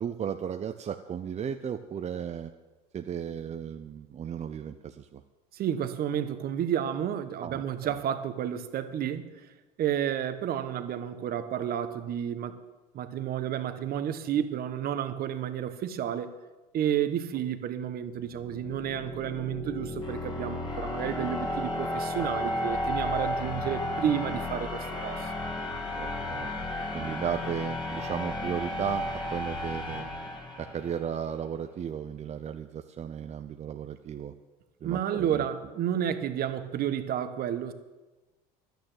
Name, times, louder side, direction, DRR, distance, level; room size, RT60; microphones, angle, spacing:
voice 1, 0.0-2.5 2.9-5.2 7.4-8.0 26.0-26.5 26.9-30.1 30.6-34.3 34.8-35.5, right 8 dB, 35° right, 7 dB, 0.7 m, -35 dB
voice 2, 5.5-9.3 9.8-12.6 12.9-16.3 16.7-25.3 34.8-37.7, right 9 dB, 55° right, 10 dB, 1.2 m, -31 dB
sound 1, 18.2-31.1, left 1 dB, 25° left, 2.9 m, -33 dB
11.5 x 9.3 x 7.6 m, 1.2 s
hypercardioid pair, 80°, 19 cm